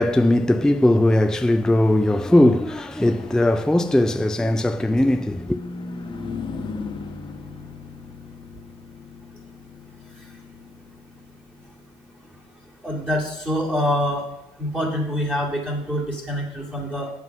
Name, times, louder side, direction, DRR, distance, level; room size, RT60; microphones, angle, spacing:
voice 1, 0.0-5.6, left 1 dB, 5° left, 0.4 m, -19 dB
Car passing by / Truck, 2.1-15.8, left 4 dB, 35° left, 1.4 m, -39 dB
voice 2, 12.8-14.3 14.6-17.1, equal, 15° right, 2.4 m, -25 dB
7.9 x 7.2 x 5.4 m
supercardioid pair, 95°, 14 cm